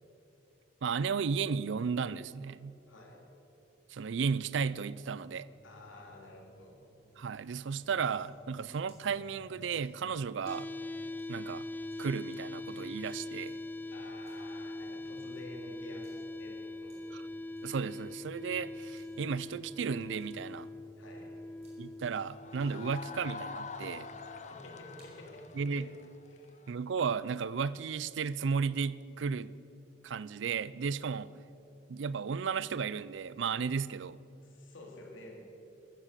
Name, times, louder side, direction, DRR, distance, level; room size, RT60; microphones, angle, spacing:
voice 1, 0.8-2.8 3.9-5.5 7.2-10.7 11.3-11.7 12.0-13.6 17.1-17.2 17.6-20.7 21.8-24.1 25.6-25.9 26.7-29.5 30.0-31.3 31.9-34.2, right 5 dB, 70° right, 19 dB, 0.4 m, -34 dB
voice 2, 2.9-3.3 5.6-6.8 13.9-17.0 21.0-21.4 24.2-25.9 26.3-26.6 34.4-35.5, left 2 dB, 85° left, 1 dB, 3.0 m, -50 dB
sound 1, 5.6-25.4, right 1 dB, 30° right, 4.3 m, -59 dB
sound 2, 10.5-24.4, left 2 dB, 10° left, 0.3 m, -43 dB
sound 3, 22.3-27.0, left 4 dB, 35° left, 0.7 m, -45 dB
14.5 x 12.5 x 6.6 m, 2.7 s
head